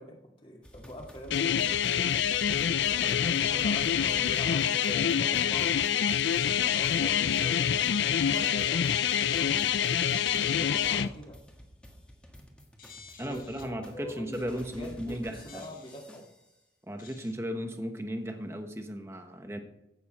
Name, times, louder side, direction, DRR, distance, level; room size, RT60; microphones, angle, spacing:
voice 1, 0.0-1.7 2.9-5.9 6.6-9.8 10.4-11.4 13.2-16.2, left 1 dB, 30° left, 0 dB, 2.1 m, -44 dB
sound 1, 0.6-16.5, equal, 5° left, 1.4 m, -51 dB
sound 2, 1.3-11.1, left 8 dB, 75° left, 0.4 m, -26 dB
sound 3, 6.1-11.1 12.8-13.6 15.5-16.0 17.0-17.3, left 5 dB, 50° left, 1.7 m, -48 dB
voice 2, 13.2-15.7 16.9-19.6, equal, 15° right, 5 dB, 1.2 m, -36 dB
15.5 x 7.2 x 4.3 m, 0.88 s
head